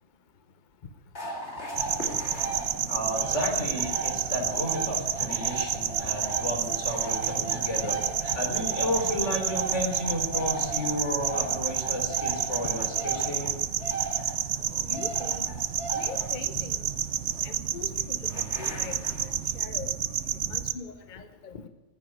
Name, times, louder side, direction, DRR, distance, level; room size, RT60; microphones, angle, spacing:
sound 1, 1.2-19.7, right 2 dB, 65° left, 2.7 m, -37 dB
sound 2, 1.7-20.7, right 10 dB, 80° right, 1.0 m, -30 dB
voice 1, 2.9-8.0 8.3-13.6, left 1 dB, 85° left, 1 dB, 4.1 m, -32 dB
voice 2, 14.9-15.5 15.9-16.9 17.4-20.0 20.5-21.7, left 5 dB, 45° left, 9 dB, 1.0 m, -41 dB
14.5 x 9.0 x 9.7 m, 1.1 s
omnidirectional pair, 1.2 m